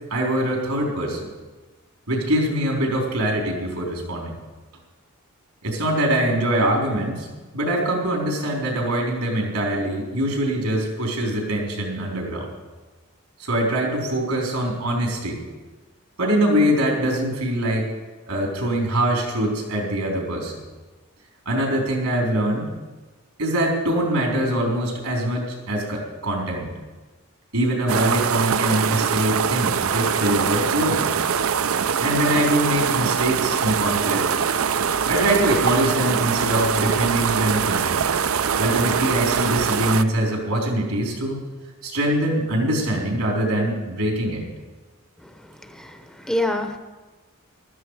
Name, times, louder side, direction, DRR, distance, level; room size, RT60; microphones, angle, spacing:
voice 1, 0.1-1.3 2.1-4.3 5.6-7.3 7.5-12.5 13.4-15.4 16.2-17.9 18.3-20.5 21.5-22.7 23.4-26.7 27.5-31.1 32.0-34.3 35.1-38.2 38.6-41.4 41.8-44.4, right 1 dB, 85° right, -1 dB, 4.1 m, -23 dB
sound 1, 27.9-40.0, right 7 dB, 65° right, 0.5 m, -23 dB
voice 2, 45.2-46.8, left 1 dB, 5° left, 5 dB, 0.8 m, -28 dB
15.0 x 13.0 x 4.8 m, 1.3 s
head